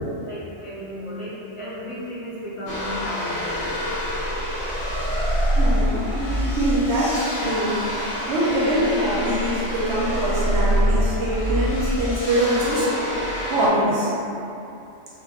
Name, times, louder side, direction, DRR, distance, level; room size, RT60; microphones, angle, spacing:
voice 1, 0.0-3.6, equal, 40° left, -9 dB, 0.5 m, -34 dB
sound 1, 2.7-13.7, equal, 80° left, 1.0 m, -25 dB
voice 2, 5.6-7.8 8.3-13.0 13.5-14.1, right 1 dB, 70° right, -6 dB, 0.8 m, -23 dB
2.3 x 2.2 x 3.5 m, 2.8 s
omnidirectional pair, 1.3 m